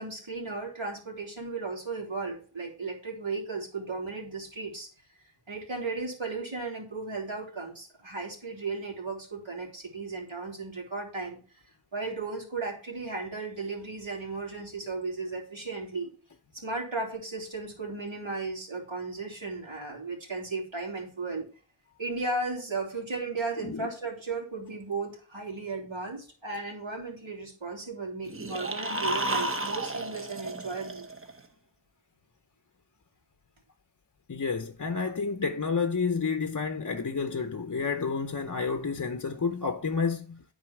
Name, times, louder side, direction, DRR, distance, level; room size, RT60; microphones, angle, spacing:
voice 1, 0.0-4.9 5.5-11.4 11.9-16.1 16.5-21.5 22.0-31.1, right 3 dB, 70° right, 3.3 m, -35 dB
sound 1, 28.3-31.4, right 1 dB, 25° right, 1.0 m, -32 dB
voice 2, 34.3-40.4, left 5 dB, 40° left, 0.7 m, -30 dB
9.8 x 4.1 x 6.0 m
wide cardioid pair, 55°, 48 cm